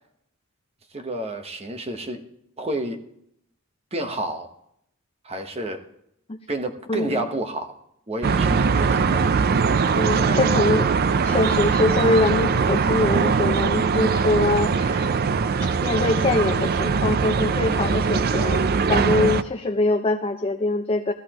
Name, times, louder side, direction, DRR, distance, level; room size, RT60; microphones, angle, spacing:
voice 1, 0.9-2.2 2.6-3.0 3.9-4.5 5.2-5.8 6.5-7.7 8.1-9.2 10.1-10.5, right 2 dB, 30° right, 6 dB, 1.1 m, -30 dB
voice 2, 6.9-7.2 9.9-10.9 11.2-15.1 15.8-18.6 18.9-21.1, left 2 dB, 25° left, 5 dB, 0.5 m, -23 dB
sound 1, 8.2-19.4, right 5 dB, 45° right, 0.4 m, -21 dB
16.0 x 13.5 x 3.0 m, 0.74 s
head